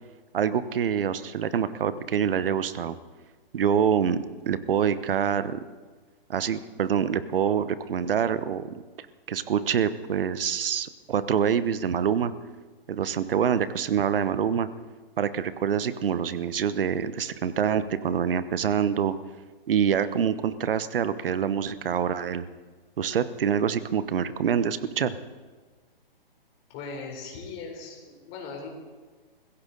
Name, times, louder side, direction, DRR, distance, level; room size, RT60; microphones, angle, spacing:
voice 1, 0.3-3.0 3.5-5.6 6.3-8.8 9.3-12.3 12.9-14.7 15.2-19.1 19.7-22.5 23.0-25.2, right 8 dB, 70° right, 14 dB, 1.1 m, -26 dB
voice 2, 26.7-28.7, left 4 dB, 30° left, 1 dB, 3.8 m, -39 dB
22.0 x 15.5 x 4.0 m, 1.4 s
hypercardioid pair, 155°, 29 cm